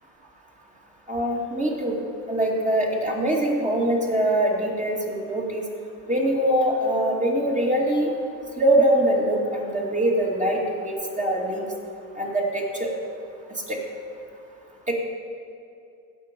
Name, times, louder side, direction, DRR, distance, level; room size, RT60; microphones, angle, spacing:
voice 1, 1.1-1.9 2.3-5.6 6.1-8.1 8.6-11.6 12.2-12.9 13.7-13.8 14.9-15.0, right 1 dB, 15° right, -2 dB, 2.6 m, -23 dB
16.0 x 6.1 x 5.4 m, 2.6 s
hypercardioid pair, 70°, 43 cm